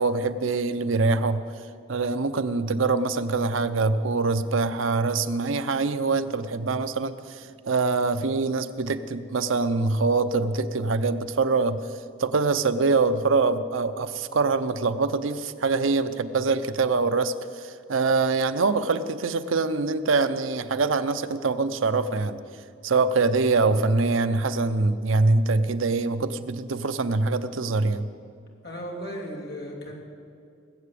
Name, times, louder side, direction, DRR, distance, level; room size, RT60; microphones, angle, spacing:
voice 1, 0.0-1.4 1.9-11.8 12.2-22.4 22.8-28.1, right 3 dB, 80° right, 11 dB, 0.7 m, -24 dB
voice 2, 28.6-30.0, equal, 55° left, -1 dB, 2.6 m, -36 dB
19.5 x 7.6 x 8.4 m, 2.3 s
head